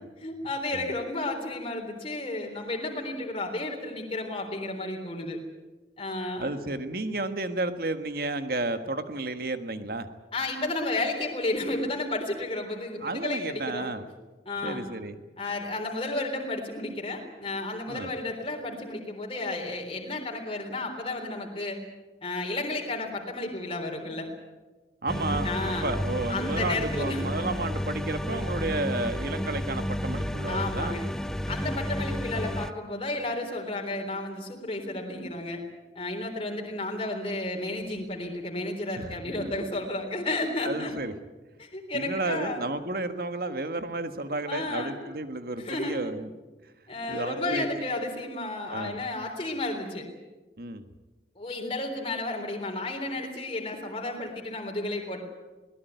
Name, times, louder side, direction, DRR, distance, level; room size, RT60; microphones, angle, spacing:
voice 1, 0.2-5.4 6.0-6.5 10.3-13.9 14.5-14.9 15.4-21.8 22.2-24.3 25.4-25.9 26.3-27.2 30.5-31.0 31.5-35.6 36.0-41.0 41.6-42.7 43.4-43.5 44.5-45.0 45.6-46.0 46.9-50.1 51.4-55.2, left 2 dB, 30° left, 1 dB, 3.7 m, -32 dB
voice 2, 6.4-10.1 13.0-14.1 14.6-15.2 17.9-18.1 25.0-25.5 25.8-30.9 39.0-39.7 40.6-41.1 41.9-46.3 47.1-47.7 48.7-49.0 50.6-50.8, right 2 dB, 55° right, 9 dB, 1.6 m, -32 dB
sound 1, 25.1-32.7, equal, 5° left, 0.7 m, -31 dB
22.0 x 18.5 x 9.4 m, 1.2 s
head